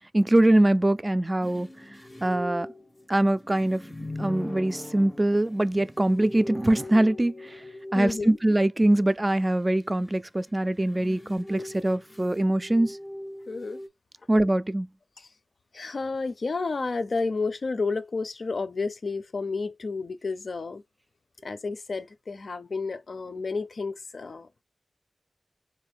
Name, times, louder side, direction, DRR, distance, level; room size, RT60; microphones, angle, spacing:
voice 1, 0.1-1.7 2.2-2.7 3.1-3.9 4.2-7.6 7.9-13.0 14.3-14.9, right 1 dB, 25° right, 0.3 m, -23 dB
sound 1, 1.4-8.7 10.6-13.9, left 1 dB, 25° left, 0.5 m, -40 dB
voice 2, 7.9-8.4 13.5-13.8 15.2-15.3 15.7-20.8 21.4-24.5, left 4 dB, 75° left, 0.5 m, -31 dB
3.4 x 2.6 x 3.3 m
wide cardioid pair, 65°, 0 cm